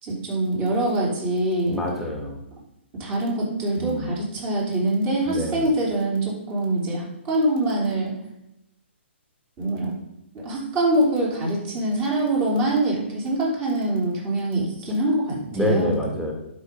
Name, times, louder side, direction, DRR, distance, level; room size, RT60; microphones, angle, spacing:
voice 1, 0.0-1.8 3.0-8.1 9.6-10.0 10.3-16.0, right 1 dB, 25° right, -3 dB, 3.3 m, -24 dB
voice 2, 1.7-2.4 3.8-4.1 5.3-5.6 15.5-16.3, equal, ahead, -2 dB, 1.8 m, -26 dB
11.5 x 5.6 x 3.7 m, 0.87 s
hypercardioid pair, 135°, 7 cm